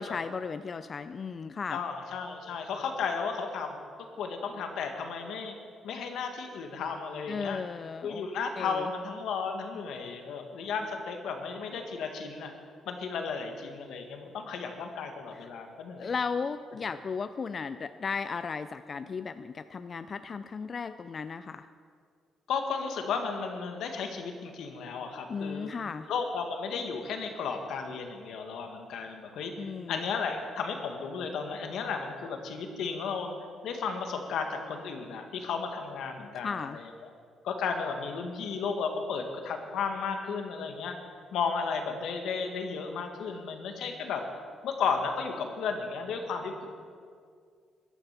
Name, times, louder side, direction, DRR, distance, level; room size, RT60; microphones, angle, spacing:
voice 1, 0.0-1.8 7.3-8.3 8.6-8.9 15.3-15.5 16.0-21.7 25.3-26.1 29.6-30.0 36.4-36.8, left 5 dB, 35° left, 11 dB, 0.4 m, -35 dB
voice 2, 1.7-3.8 4.2-5.5 5.8-7.6 8.0-12.5 12.8-16.1 22.5-25.7 26.1-33.3 33.6-37.1 37.4-40.9 41.3-44.2 44.6-46.6, left 5 dB, 75° left, 4 dB, 1.7 m, -34 dB
14.0 x 12.0 x 5.8 m, 2.2 s
cardioid pair, 130°, 0 cm